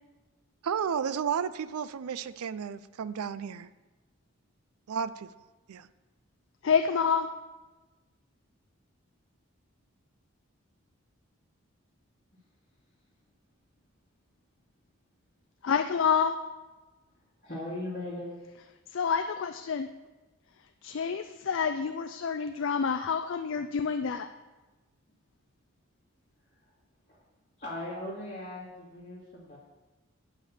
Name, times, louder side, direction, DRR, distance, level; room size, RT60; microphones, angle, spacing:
voice 1, 0.6-3.7 4.9-5.3 5.7-5.9, right 7 dB, 90° right, 16 dB, 0.4 m, -32 dB
voice 2, 6.6-7.3 15.6-16.4 18.9-19.9 20.8-24.3, left 6 dB, 60° left, 8 dB, 0.4 m, -28 dB
voice 3, 17.4-18.4 27.6-29.6, left 1 dB, 35° left, -10 dB, 2.2 m, -38 dB
8.6 x 5.6 x 7.3 m, 1.2 s
head